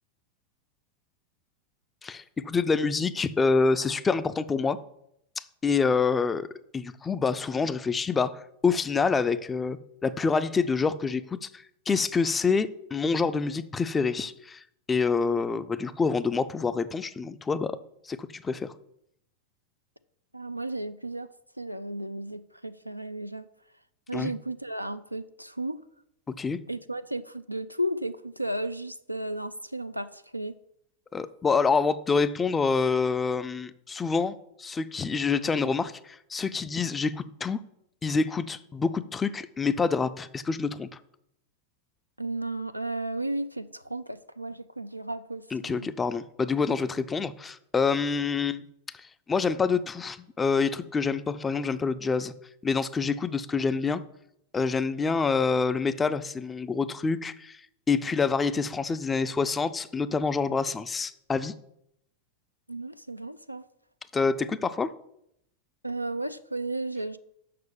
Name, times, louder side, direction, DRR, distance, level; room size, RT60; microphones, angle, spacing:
voice 1, 2.0-4.8 5.4-6.5 6.7-14.6 14.9-17.8 18.0-18.7 24.1-24.3 26.4-26.6 31.1-37.6 38.0-40.9 45.5-48.6 48.9-52.3 52.6-54.0 54.5-57.6 57.9-61.5 64.1-64.9, left 5 dB, 15° left, 13 dB, 0.5 m, -27 dB
voice 2, 20.3-21.3 21.6-23.5 24.1-25.8 26.7-30.5 42.2-45.9 62.7-63.6 65.8-67.2, right 1 dB, 90° right, 10 dB, 0.4 m, -34 dB
6.7 x 6.2 x 7.2 m, 0.76 s
figure-of-eight pair, 90°, 0 cm